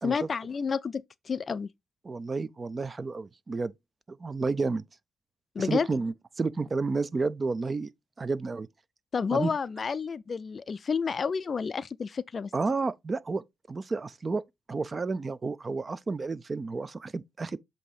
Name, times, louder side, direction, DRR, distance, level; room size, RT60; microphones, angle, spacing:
voice 1, 0.0-1.7 5.6-5.9 9.1-12.5, left 5 dB, 40° left, 0.3 m, -30 dB
voice 2, 2.0-3.7 4.1-4.8 5.6-7.9 8.2-8.7 9.3-9.5 12.5-17.6, right 4 dB, 30° right, 0.4 m, -31 dB
7.7 x 2.8 x 4.9 m
cardioid pair, 90°, 0 cm